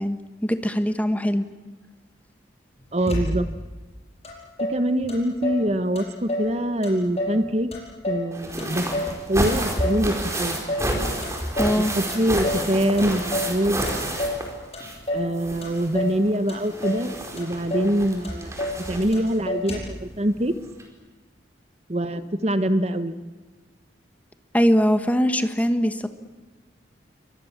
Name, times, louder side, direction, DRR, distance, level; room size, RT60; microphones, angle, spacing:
voice 1, 0.0-1.5 11.6-11.9 24.5-26.1, equal, 10° left, 9 dB, 1.4 m, -22 dB
voice 2, 2.9-3.5 4.7-7.7 8.1-8.8 9.3-10.6 11.7-13.9 15.1-20.5 21.9-23.2, right 1 dB, 35° right, 11 dB, 1.2 m, -24 dB
Motor vehicle (road), 3.1-3.7 4.2-4.3 4.6-5.7 5.9-6.5 6.8-7.4 7.7-9.2 9.5-10.1 10.3-10.9 11.2-11.8 12.1-12.7 13.0-13.6 13.9-14.4 14.7-15.3 15.6-16.2 16.5-17.1 17.4-17.5 17.7-17.9 18.2-18.8 19.1-19.2 19.5-20.0, left 1 dB, 35° left, 7.2 m, -29 dB
sound 1, 8.3-15.1 15.3-19.3 20.4-20.5 20.8-20.9, right 1 dB, 15° right, 4.7 m, -30 dB
29.0 x 24.0 x 7.4 m, 1.3 s
head